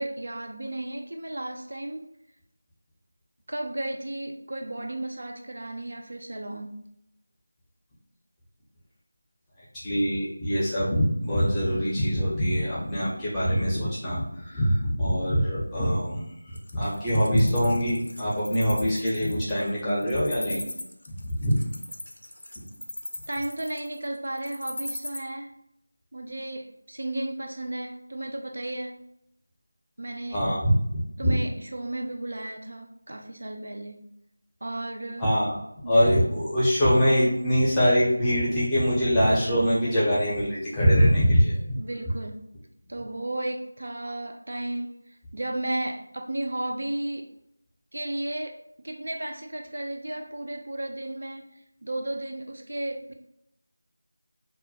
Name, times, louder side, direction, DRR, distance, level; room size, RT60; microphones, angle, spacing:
voice 1, 0.0-2.1 3.5-6.8 23.3-25.5 26.1-29.0 30.0-30.4 31.2-34.1 34.6-35.3 35.8-36.2 41.8-42.4 42.9-45.0 45.3-47.3 47.9-53.1, right 1 dB, 65° right, 3 dB, 0.3 m, -34 dB
voice 2, 9.7-16.2 16.7-20.6 21.4-21.6 30.3-31.4 35.2-35.5 35.9-41.8, equal, 10° left, -9 dB, 0.6 m, -23 dB
Wild animals, 16.5-25.2, left 1 dB, 70° left, 0.4 m, -38 dB
2.2 x 2.1 x 2.7 m, 0.78 s
figure-of-eight pair, 170°, 0 cm